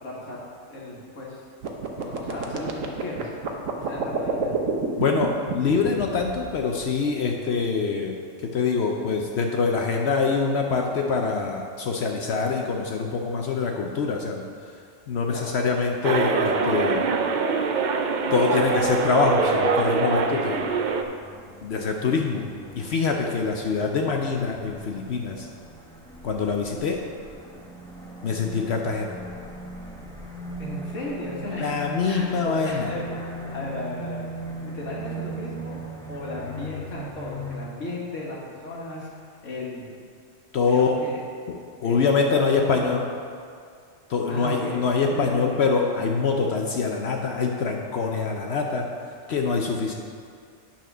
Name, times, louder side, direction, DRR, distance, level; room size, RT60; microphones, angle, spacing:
voice 1, 0.0-1.4 2.0-3.3 3.8-4.5 15.3-15.6 18.2-19.0 19.4-19.5 20.5-20.8 30.6-31.7 32.1-33.0 33.5-34.2 34.6-35.8 36.1-39.1 39.4-39.9 40.6-41.2 41.8-43.0 44.3-45.6, left 2 dB, 80° left, -4 dB, 1.9 m, -35 dB
sound 1, 1.6-6.8, right 6 dB, 85° right, 1.2 m, -29 dB
voice 2, 5.0-8.1 8.4-14.4 15.1-17.1 18.3-20.6 21.6-22.5 22.7-25.5 26.2-27.0 28.2-29.1 31.6-32.9 40.5-40.9 41.5-43.0 44.1-48.9 49.3-49.9, left 4 dB, 65° left, 1 dB, 0.9 m, -24 dB
sound 2, 16.0-21.0, right 4 dB, 55° right, 0.5 m, -24 dB
sound 3, 19.2-37.6, right 1 dB, 5° left, 0.8 m, -39 dB
9.4 x 4.4 x 6.0 m, 2.2 s
omnidirectional pair, 1.3 m